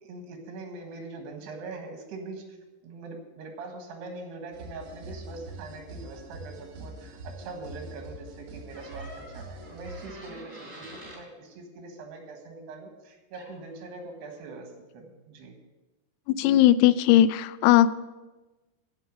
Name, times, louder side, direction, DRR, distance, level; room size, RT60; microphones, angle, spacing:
voice 1, 0.0-2.5 2.8-15.6, right 3 dB, 85° right, 4 dB, 3.7 m, -42 dB
sound 1, 4.5-10.1, right 2 dB, 60° right, 1.9 m, -43 dB
sound 2, 8.7-11.2 13.3-13.5, equal, 10° right, 4.2 m, -46 dB
voice 2, 16.3-17.9, left 12 dB, 85° left, 15 dB, 2.6 m, -19 dB
15.5 x 5.6 x 6.6 m, 1.1 s
omnidirectional pair, 4.7 m